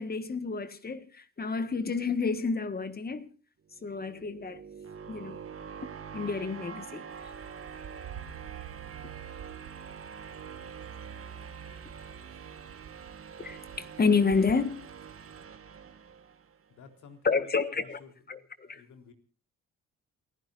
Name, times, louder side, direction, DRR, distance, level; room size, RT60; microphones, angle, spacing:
voice 1, 0.0-3.3 3.8-4.6 5.1-5.4 6.1-7.0 13.4-14.8 17.2-18.0 18.3-18.8, left 5 dB, 30° left, 1.6 m, -29 dB
sound 1, 3.7-16.7, right 7 dB, 45° right, 2.0 m, -45 dB
sound 2, 7.1-15.4, right 9 dB, 65° right, 1.2 m, -48 dB
voice 2, 16.7-17.5 17.8-19.1, left 5 dB, 75° left, 3.8 m, -53 dB
28.5 x 15.5 x 2.6 m
cardioid pair, 90°, 30 cm